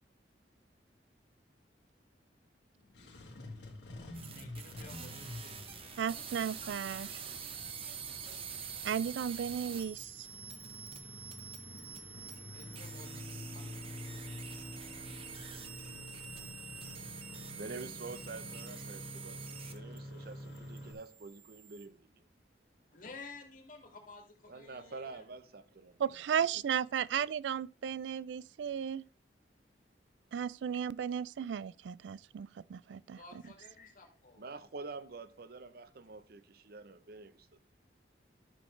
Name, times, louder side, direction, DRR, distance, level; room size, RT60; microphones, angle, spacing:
Engine starting, 2.8-20.9, left 1 dB, 75° left, 2.1 m, -48 dB
sound 1, 4.1-20.0 20.3-21.9, right 7 dB, 35° right, 0.9 m, -46 dB
voice 1, 4.3-6.3 12.5-14.1 22.9-25.2 33.1-34.5, left 3 dB, 50° left, 2.1 m, -53 dB
voice 2, 6.0-7.1 8.8-10.3 26.0-29.1 30.3-33.2, right 8 dB, 85° right, 0.3 m, -35 dB
Bowed string instrument, 12.1-17.0, right 1 dB, 10° left, 1.1 m, -55 dB
voice 3, 17.5-22.1 24.5-26.0 34.4-37.6, right 3 dB, 60° right, 0.7 m, -47 dB
13.0 x 6.3 x 3.2 m
head